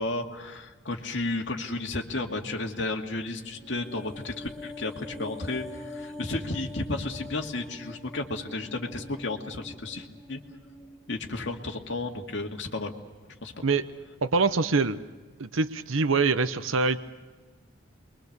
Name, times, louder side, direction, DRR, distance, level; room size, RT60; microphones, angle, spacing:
voice 1, 0.0-10.4 11.1-12.9 13.4-13.7, left 2 dB, 65° left, 2 dB, 2.3 m, -33 dB
sound 1, 3.5-12.0 12.3-12.4, left 2 dB, ahead, 3.9 m, -44 dB
voice 2, 14.2-15.0 15.4-17.0, right 4 dB, 90° right, 12 dB, 0.9 m, -24 dB
28.5 x 23.0 x 6.7 m, 1.3 s
head